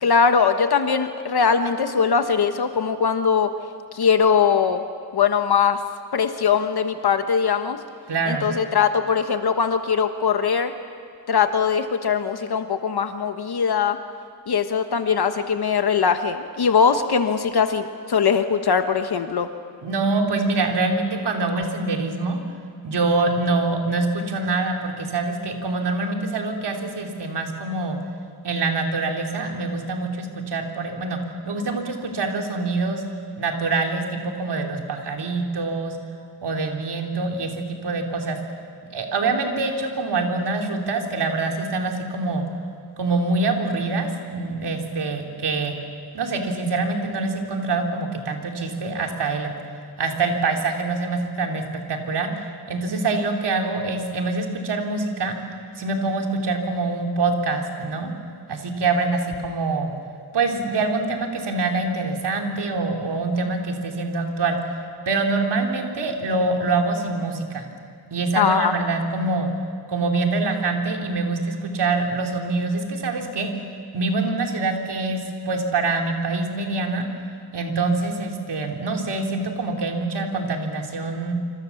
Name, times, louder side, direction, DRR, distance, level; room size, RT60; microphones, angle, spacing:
voice 1, 0.0-3.5 3.9-4.8 5.1-5.8 6.1-7.8 8.3-10.7 11.3-14.0 14.5-19.5 68.3-68.7, left 6 dB, 65° left, 8 dB, 1.3 m, -21 dB
voice 2, 8.1-8.5 19.8-22.4 22.8-28.0 28.4-31.2 31.5-33.0 33.4-35.9 36.4-38.4 38.9-42.4 43.0-45.7 46.1-49.5 50.0-52.3 52.7-55.4 55.8-58.1 58.5-59.9 60.3-64.6 65.1-67.6 68.1-69.5 69.9-73.5 73.9-77.1 77.5-81.3, right 3 dB, 75° right, 2 dB, 3.2 m, -25 dB
26.5 x 26.5 x 7.2 m, 2.2 s
wide cardioid pair, 130°, 41 cm